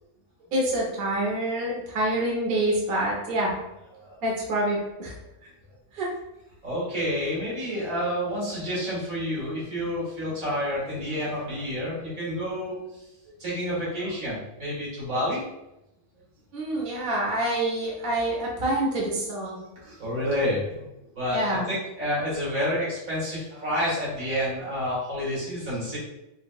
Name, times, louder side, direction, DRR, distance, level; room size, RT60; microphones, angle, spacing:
voice 1, 0.5-3.5 4.2-5.1 5.9-6.1 16.5-19.6 21.3-21.7, right 1 dB, 50° right, -3 dB, 0.8 m, -26 dB
voice 2, 6.6-12.8 13.4-15.4 19.8-20.9 21.2-26.0, equal, 75° right, -8 dB, 2.0 m, -29 dB
4.0 x 2.4 x 2.3 m, 0.90 s
omnidirectional pair, 1.5 m